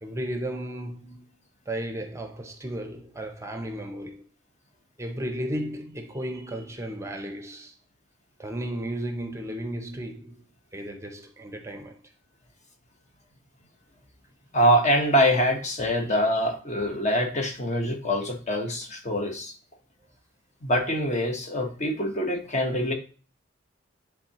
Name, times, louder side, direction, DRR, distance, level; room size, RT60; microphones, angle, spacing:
voice 1, 0.0-1.4 1.7-4.2 5.0-7.7 8.4-10.4 10.7-12.0 16.0-16.1, right 1 dB, 15° right, 0.7 m, -34 dB
voice 2, 14.5-19.6 20.6-22.9, equal, 35° left, 1.2 m, -24 dB
10.5 x 3.6 x 2.9 m
head